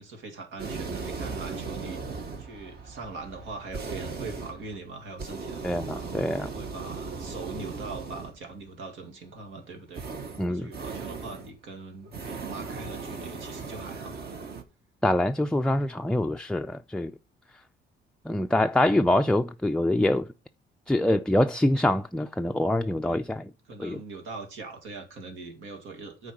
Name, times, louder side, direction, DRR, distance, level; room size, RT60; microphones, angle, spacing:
voice 1, 0.0-6.1 6.4-10.0 10.5-14.2 18.8-19.0 23.0-23.2 23.7-26.3, right 3 dB, 85° right, 2.1 m, -41 dB
sound 1, 0.6-8.5 9.9-11.6 12.0-14.6, right 4 dB, 55° right, 1.5 m, -38 dB
voice 2, 5.6-6.5 10.4-10.7 15.0-17.1 18.3-20.3 20.9-23.5 23.8-24.0, left 1 dB, 5° left, 0.4 m, -25 dB
8.2 x 4.6 x 6.3 m
cardioid pair, 90°, 20 cm